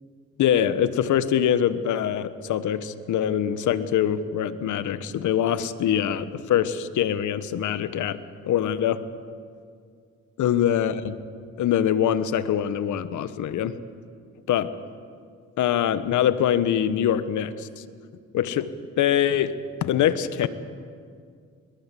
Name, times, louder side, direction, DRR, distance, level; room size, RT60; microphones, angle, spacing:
voice 1, 0.4-9.0 10.4-11.1 11.6-13.7 14.5-14.7 15.6-17.8 18.3-19.5 19.8-20.5, left 10 dB, 75° left, 13 dB, 1.2 m, -24 dB
22.0 x 21.5 x 7.6 m, 2.2 s
cardioid pair, 90°, 30 cm